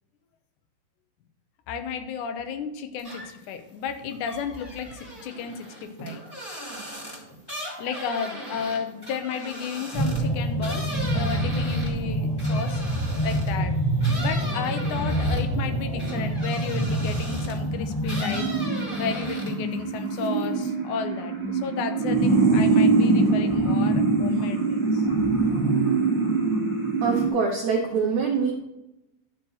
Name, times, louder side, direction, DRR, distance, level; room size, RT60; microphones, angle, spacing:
voice 1, 1.7-6.2 7.8-12.8 13.2-13.8 14.2-25.1, left 7 dB, 75° left, 7 dB, 1.9 m, -33 dB
sound 1, 3.0-3.5 3.9-13.6 14.0-17.6 18.0-19.7 20.0-20.7, equal, 10° left, 1.5 m, -38 dB
sound 2, 9.9-27.3, right 2 dB, 50° left, 0.3 m, -24 dB
voice 2, 27.0-28.5, right 5 dB, 80° right, 0 dB, 1.6 m, -24 dB
12.5 x 4.5 x 6.2 m, 0.92 s
omnidirectional pair, 4.5 m